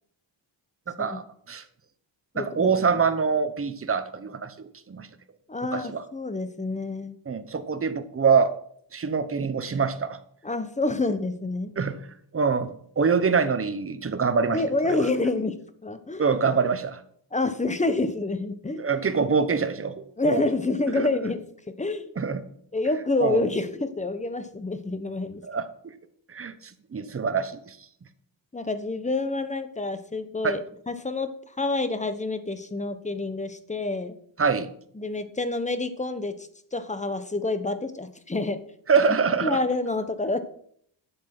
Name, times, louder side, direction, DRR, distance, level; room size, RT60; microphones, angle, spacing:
voice 1, 0.9-1.6 2.3-5.1 5.7-6.0 7.3-8.5 8.9-10.2 11.8-12.0 12.3-14.6 14.9-15.0 16.2-17.0 18.8-20.5 20.9-21.1 22.2-22.4 23.2-23.4 25.5-25.6 26.3-26.5 26.9-27.8 30.4-30.6 34.4-34.7 38.9-39.6, right 5 dB, 30° right, 11 dB, 1.1 m, -25 dB
voice 2, 2.3-2.7 5.5-7.2 10.4-11.7 14.5-16.2 17.3-18.9 20.2-22.1 22.7-25.4 28.5-31.3 31.6-34.2 34.9-38.6 39.1-40.4, left 2 dB, 15° left, 11 dB, 1.0 m, -28 dB
11.5 x 7.4 x 6.0 m, 0.65 s
cardioid pair, 120°, 47 cm